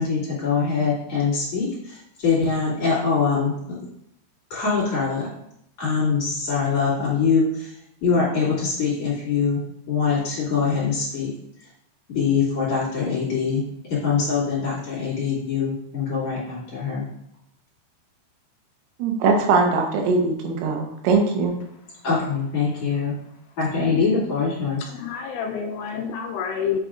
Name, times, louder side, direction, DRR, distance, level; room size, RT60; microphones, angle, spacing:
voice 1, 0.0-3.8 4.5-5.3 5.8-7.7 8.0-9.6 9.9-11.3 12.1-13.6 14.0-17.0 22.0-23.2 23.6-24.8, left 5 dB, 40° left, -9 dB, 2.8 m, -23 dB
voice 2, 19.0-21.6, right 4 dB, 85° right, 2 dB, 3.8 m, -21 dB
voice 3, 24.9-26.8, left 7 dB, 85° left, 3 dB, 3.0 m, -28 dB
8.2 x 6.6 x 2.5 m, 0.78 s
omnidirectional pair, 5.9 m